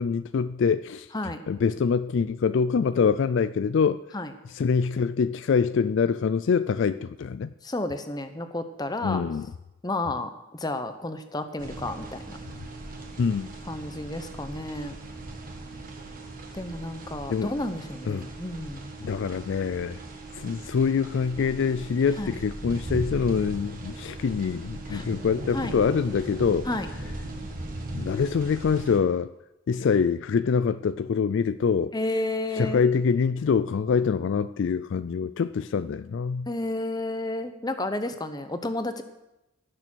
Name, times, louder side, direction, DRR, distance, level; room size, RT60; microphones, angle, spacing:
voice 1, 0.0-1.1 1.5-4.0 4.5-7.5 9.0-9.5 13.2-13.5 17.3-17.5 18.1-18.3 19.0-20.0 20.4-26.7 27.9-29.3 29.7-31.9 32.6-36.5, left 6 dB, 55° left, 13 dB, 0.3 m, -25 dB
voice 2, 7.6-9.2 9.8-12.4 13.7-15.0 16.5-18.9 22.2-22.4 24.9-25.0 25.5-25.7 26.7-26.9 31.9-32.9 36.5-39.0, left 2 dB, 20° left, 9 dB, 0.8 m, -31 dB
sound 1, 11.6-29.0, right 2 dB, 40° right, 1.6 m, -38 dB
16.0 x 6.9 x 6.2 m, 0.93 s
head